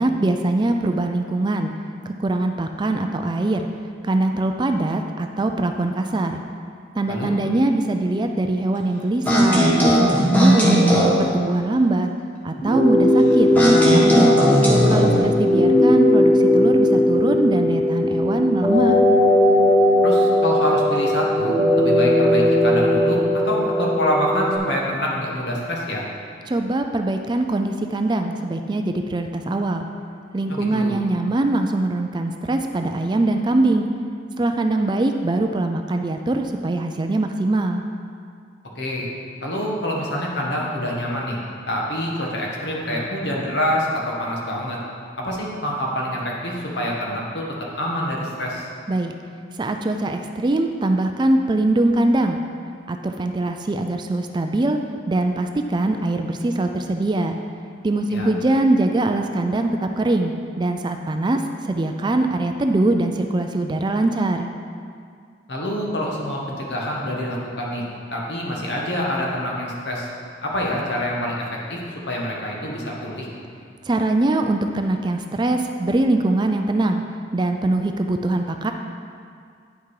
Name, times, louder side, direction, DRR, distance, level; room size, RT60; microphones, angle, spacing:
voice 1, 0.0-1.7 2.2-3.6 4.0-6.4 7.0-10.9 11.2-12.1 12.4-14.5 14.9-19.0 26.5-29.9 30.3-33.9 34.4-37.8 48.9-49.1 49.6-52.4 52.9-54.8 55.1-57.3 57.8-64.5 73.9-77.0 77.3-78.7, right 2 dB, 25° right, 5 dB, 0.3 m, -22 dB
sound 1, 9.3-11.2 13.5-15.2, equal, 10° left, 1.3 m, -17 dB
sound 2, 12.6-24.6, left 1 dB, 35° left, 2.3 m, -18 dB
voice 2, 20.0-26.0 30.5-30.9 38.7-39.1 39.4-41.4 41.7-44.8 45.2-47.4 47.7-48.7 58.1-58.3 65.5-67.8 68.1-70.1 70.4-71.4 71.7-71.8 72.1-73.3, equal, 60° left, -3 dB, 1.5 m, -26 dB
9.4 x 5.8 x 4.8 m, 2.2 s
head